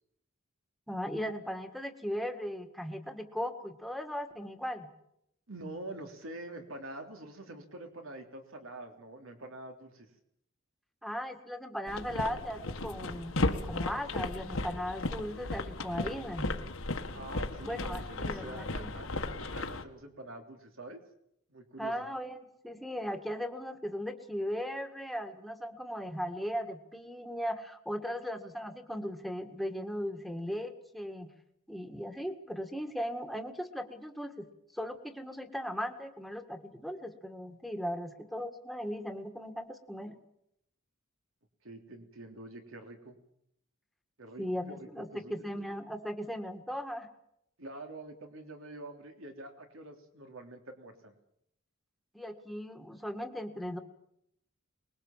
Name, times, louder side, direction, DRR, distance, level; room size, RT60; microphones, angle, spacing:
voice 1, 0.9-4.9 11.0-16.5 17.7-19.0 21.8-31.3 31.7-34.5 34.7-40.2 44.4-47.1 52.1-53.8, equal, ahead, 6 dB, 1.9 m, -37 dB
voice 2, 5.5-10.1 17.1-21.0 21.5-21.9 41.6-43.2 44.2-45.4 47.6-51.1, right 2 dB, 70° right, 4 dB, 3.4 m, -46 dB
sound 1, 11.9-19.8, left 2 dB, 75° left, 1.7 m, -35 dB
23.5 x 21.0 x 7.4 m, 0.77 s
head